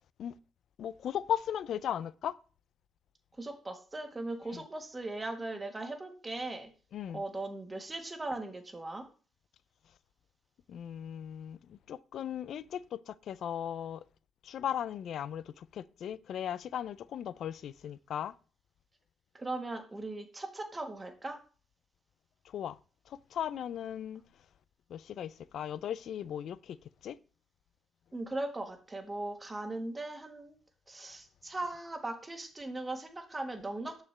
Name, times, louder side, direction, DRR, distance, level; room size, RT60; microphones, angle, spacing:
voice 1, 0.8-2.3 4.5-4.6 6.9-7.2 10.7-14.0 14.4-18.3 22.5-22.8 23.1-24.2 24.9-26.8 27.0-27.2, left 10 dB, 70° left, 0.4 m, -37 dB
voice 2, 3.4-6.7 7.1-9.0 19.3-21.4 28.1-30.5 30.9-34.0, right 2 dB, 20° right, 1.4 m, -39 dB
6.6 x 5.7 x 3.3 m
cardioid pair, 90°, 0 cm